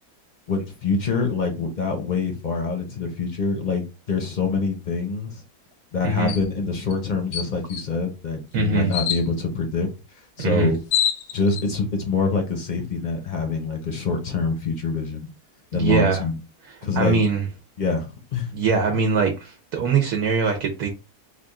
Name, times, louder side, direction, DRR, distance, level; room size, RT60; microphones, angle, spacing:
voice 1, 0.5-5.4 5.9-9.9 10.4-10.8 11.3-15.3 15.7-16.4 16.8-17.2 17.8-18.5, left 4 dB, 45° left, 0.6 m, -25 dB
voice 2, 6.0-6.4 8.5-8.9 10.4-10.7 15.7-16.2 16.9-17.5 18.5-20.9, right 5 dB, 75° right, 1.2 m, -22 dB
sound 1, 6.3-6.5 6.9-7.0 7.3-7.9 8.9-9.2 10.4-10.5 10.7-11.6, left 9 dB, 80° left, 1.2 m, -25 dB
3.4 x 2.4 x 3.5 m
omnidirectional pair, 1.7 m